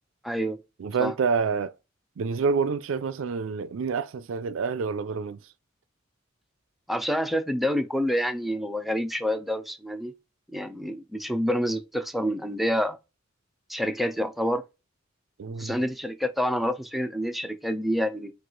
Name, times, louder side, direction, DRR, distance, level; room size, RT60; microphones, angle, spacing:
voice 1, 0.2-0.6 1.0-1.1 6.9-10.1 10.5-13.0 13.7-14.6 15.6-18.3, equal, ahead, 0.5 m, -27 dB
voice 2, 0.8-1.7 2.2-5.4 15.4-15.8, right 5 dB, 80° right, 0.4 m, -27 dB
4.7 x 2.4 x 3.8 m
head